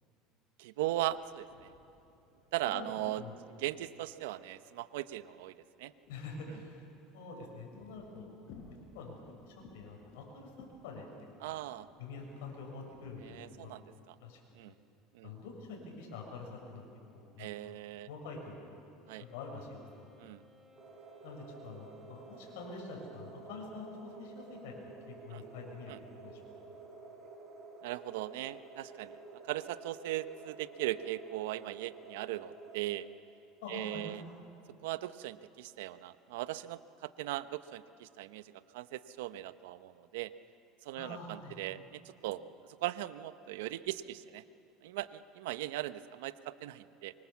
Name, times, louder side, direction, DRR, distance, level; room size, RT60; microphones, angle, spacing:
voice 1, 0.6-1.7 2.5-3.2 3.6-5.9 11.4-11.9 13.2-14.1 14.5-14.7 15.1-15.3 17.4-18.1 19.1-19.2 20.2-20.4 25.3-25.4 25.9-26.0 27.8-29.2 29.5-33.1 33.7-34.2 34.8-40.3 40.8-42.4 42.8-44.4 44.8-47.1, right 15 dB, 85° right, 13 dB, 0.8 m, -39 dB
sound 1, 1.0-4.5 5.0-6.9 7.3-13.4, left 4 dB, 65° left, 7.3 m, -60 dB
voice 2, 6.1-8.3 8.7-9.2 9.5-11.1 11.4-11.5 12.0-13.7 14.2-14.4 15.2-16.9 17.1-17.7 18.0-18.7 19.2-20.1 21.2-26.4 33.6-34.2 41.0-41.6, left 3 dB, 85° left, 0 dB, 6.8 m, -46 dB
Wind instrument woodwind instrument, 19.0-23.1, left 2 dB, ahead, 4.1 m, -63 dB
sound 2, 20.8-33.0, right 3 dB, 30° right, 4.0 m, -51 dB
24.5 x 24.0 x 7.3 m, 2.8 s
supercardioid pair, 120°, 0 cm